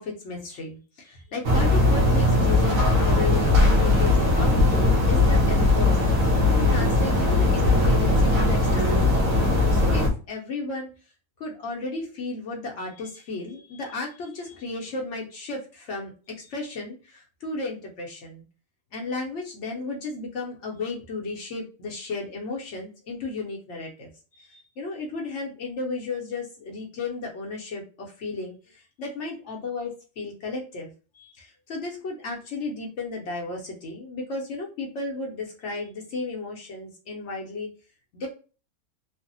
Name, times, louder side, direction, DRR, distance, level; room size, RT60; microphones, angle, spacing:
voice 1, 0.0-6.0 6.5-9.4 9.7-10.9 11.4-18.4 18.9-24.1 24.4-37.7 38.1-38.3, left 3 dB, 60° left, -1 dB, 0.8 m, -34 dB
sound 1, 1.4-10.1, left 2 dB, 70° right, 1.1 m, -19 dB
3.2 x 2.1 x 2.6 m, 0.36 s
omnidirectional pair, 1.6 m